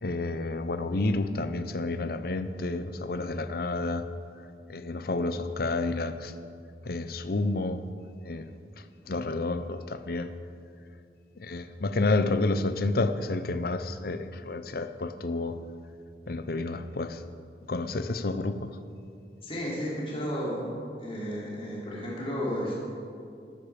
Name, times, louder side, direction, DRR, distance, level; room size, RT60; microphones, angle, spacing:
voice 1, 0.0-4.1 4.7-6.3 6.9-7.8 8.2-8.5 9.1-10.3 11.4-15.6 16.3-17.2 17.7-18.7, left 2 dB, 60° left, 11 dB, 0.7 m, -30 dB
voice 2, 19.4-20.7 21.0-22.8, equal, 35° left, -5 dB, 3.5 m, -33 dB
13.5 x 12.0 x 5.1 m, 2.4 s
head